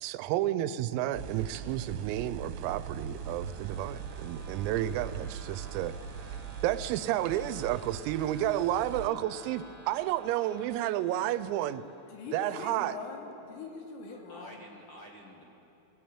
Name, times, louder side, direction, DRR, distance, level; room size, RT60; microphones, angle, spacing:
voice 1, 0.0-5.9 6.6-11.9 12.3-12.9, right 13 dB, 90° right, 14 dB, 3.5 m, -31 dB
sound 1, 1.1-9.1, right 7 dB, 70° right, 3.2 m, -41 dB
sound 2, 2.6-12.3, equal, 15° right, 3.7 m, -54 dB
voice 2, 12.1-14.7, left 4 dB, 75° left, 1 dB, 5.0 m, -42 dB
voice 3, 14.1-15.4, left 1 dB, 55° left, -1 dB, 1.4 m, -50 dB
23.0 x 19.0 x 8.9 m, 3.0 s
omnidirectional pair, 5.9 m